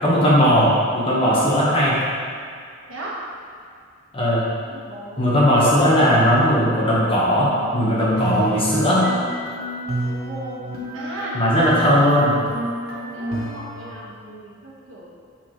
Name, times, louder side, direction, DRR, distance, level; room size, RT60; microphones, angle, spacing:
voice 1, 0.0-1.9 4.1-4.4 5.2-9.0 11.3-12.3, equal, 25° left, -6 dB, 1.2 m, -17 dB
voice 2, 4.7-5.3 10.0-10.7 10.9-11.4 12.9-15.0, right 2 dB, 65° right, -6 dB, 1.5 m, -36 dB
sound 1, 7.4-13.9, equal, 85° right, 1.2 m, -30 dB
6.4 x 5.7 x 3.1 m, 2.1 s
head